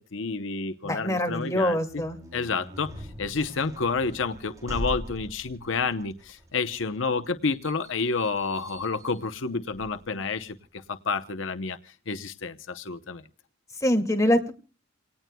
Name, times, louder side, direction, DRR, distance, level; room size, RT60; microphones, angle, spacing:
voice 1, 0.1-2.0 2.3-13.2, left 4 dB, 70° left, 9 dB, 0.8 m, -30 dB
voice 2, 0.8-2.2 13.8-14.5, left 1 dB, 15° left, 3 dB, 2.2 m, -24 dB
sound 1, 1.8-10.5, equal, 15° right, 3.3 m, -42 dB
28.0 x 18.5 x 2.2 m, 0.36 s
head